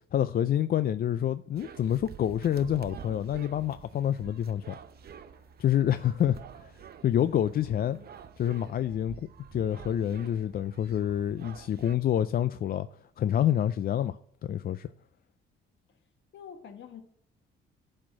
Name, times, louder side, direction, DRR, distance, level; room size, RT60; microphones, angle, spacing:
voice 1, 0.1-4.8 5.6-6.7 7.0-8.0 8.4-12.9 13.2-14.2 14.4-14.9, left 10 dB, 50° left, 0.4 m, -27 dB
sound 1, 1.6-12.0, right 8 dB, 50° right, 0.7 m, -48 dB
voice 2, 16.3-17.0, left 7 dB, 65° left, 1.7 m, -46 dB
10.5 x 4.4 x 7.4 m
cardioid pair, 90°, 20 cm